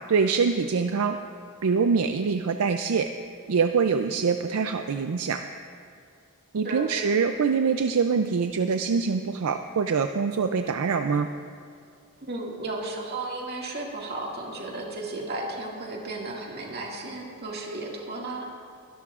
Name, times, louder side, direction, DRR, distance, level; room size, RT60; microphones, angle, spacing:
voice 1, 0.1-1.2 1.6-3.1 3.5-5.4 6.5-11.3, right 5 dB, 70° right, 7 dB, 0.4 m, -24 dB
voice 2, 12.2-18.5, right 2 dB, 45° right, -2 dB, 2.1 m, -34 dB
22.5 x 13.0 x 2.5 m, 2.4 s
head